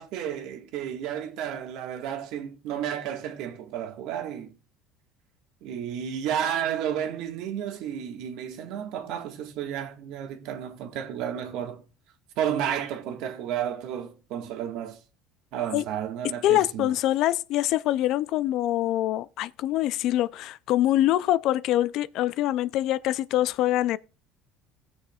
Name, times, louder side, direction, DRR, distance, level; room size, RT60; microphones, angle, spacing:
voice 1, 0.0-4.5 5.6-11.8 12.4-15.0 15.5-16.9, right 9 dB, 70° right, 1.6 m, -32 dB
voice 2, 16.4-24.0, left 14 dB, 65° left, 0.4 m, -24 dB
17.0 x 6.3 x 2.4 m
supercardioid pair, 100°, 0 cm